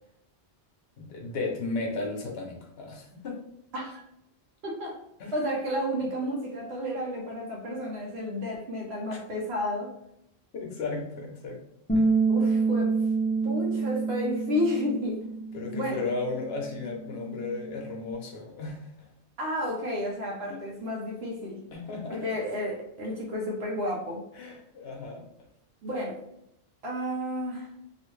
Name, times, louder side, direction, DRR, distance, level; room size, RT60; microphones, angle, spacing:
voice 1, 1.0-3.4 5.2-5.3 9.1-9.2 10.5-11.6 11.9-12.2 15.5-18.9 20.5-20.6 21.7-22.3 24.4-25.3, left 3 dB, 75° left, 1 dB, 1.0 m, -35 dB
voice 2, 3.7-4.0 4.6-5.0 5.3-9.9 12.3-12.9 13.4-15.2 15.7-16.1 19.4-21.6 22.1-24.2 25.8-26.2 26.8-27.7, left 1 dB, 85° right, -2 dB, 1.0 m, -31 dB
Bass guitar, 11.9-18.1, right 4 dB, 10° left, 0.4 m, -28 dB
2.9 x 2.4 x 3.1 m, 0.77 s
omnidirectional pair, 1.1 m